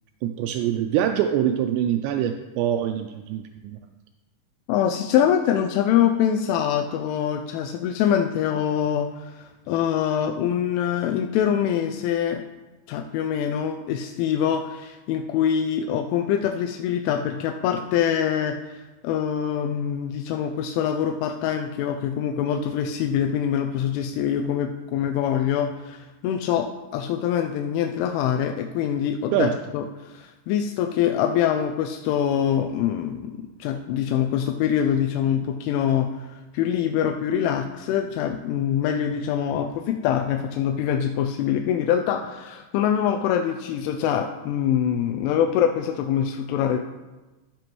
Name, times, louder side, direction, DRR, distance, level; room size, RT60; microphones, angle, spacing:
voice 1, 0.2-3.8 29.3-29.5, right 10 dB, 85° right, 6 dB, 2.5 m, -24 dB
voice 2, 4.7-12.4 12.9-46.8, left 9 dB, 90° left, 4 dB, 3.0 m, -24 dB
13.0 x 7.7 x 3.0 m, 1.1 s
omnidirectional pair, 5.4 m